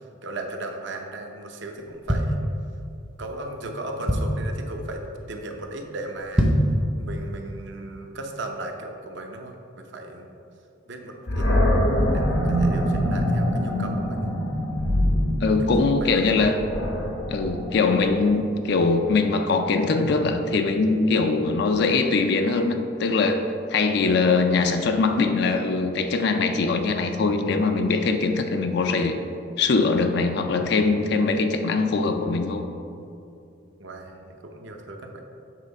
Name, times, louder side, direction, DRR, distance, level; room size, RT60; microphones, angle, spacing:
voice 1, 0.2-2.5 3.2-6.5 7.0-10.3 10.9-11.5 12.1-14.3 15.6-15.7 16.0-16.4 33.8-35.2, right 2 dB, 60° right, 3 dB, 0.7 m, -36 dB
sound 1, 1.8-3.0 3.5-3.6 3.8-4.6 5.0-5.3 5.6-5.7 6.2-6.8 7.2-7.3, equal, 5° right, 0.6 m, -23 dB
Animal, 11.3-18.4, equal, 80° left, 1.2 m, -24 dB
voice 2, 15.4-16.6 17.3-29.2 29.6-32.7, left 3 dB, 55° left, 6 dB, 0.4 m, -22 dB
7.4 x 3.5 x 5.2 m, 2.6 s
head